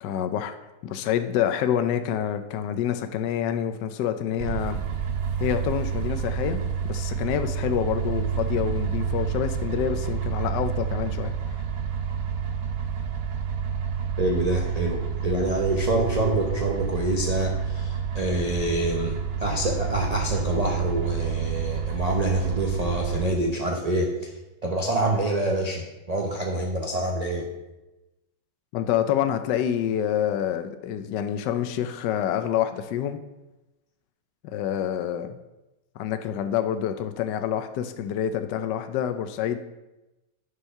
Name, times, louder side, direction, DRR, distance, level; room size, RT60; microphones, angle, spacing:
voice 1, 0.0-0.6 0.8-4.8 5.4-6.6 6.9-11.3 28.7-33.2 34.5-35.4 36.0-39.6, left 10 dB, 70° left, 9 dB, 1.1 m, -27 dB
sound 1, 4.4-23.3, right 7 dB, 80° right, 1.7 m, -29 dB
voice 2, 14.2-24.3 24.6-27.5, right 1 dB, 35° right, 0 dB, 0.6 m, -26 dB
10.0 x 5.5 x 5.6 m, 1.0 s
omnidirectional pair, 2.2 m